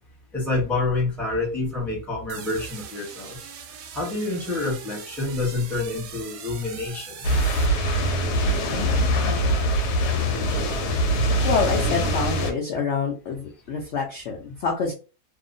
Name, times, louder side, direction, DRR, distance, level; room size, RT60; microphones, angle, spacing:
voice 1, 0.3-3.4 3.9-7.4, left 2 dB, ahead, -2 dB, 0.7 m, -27 dB
sound 1, 2.3-8.5, right 7 dB, 70° right, 0.7 m, -41 dB
sound 2, 7.2-12.5, equal, 90° left, 1.2 m, -23 dB
voice 2, 11.4-14.9, left 5 dB, 60° left, -1 dB, 0.7 m, -26 dB
2.8 x 2.1 x 2.5 m, 0.33 s
omnidirectional pair, 1.7 m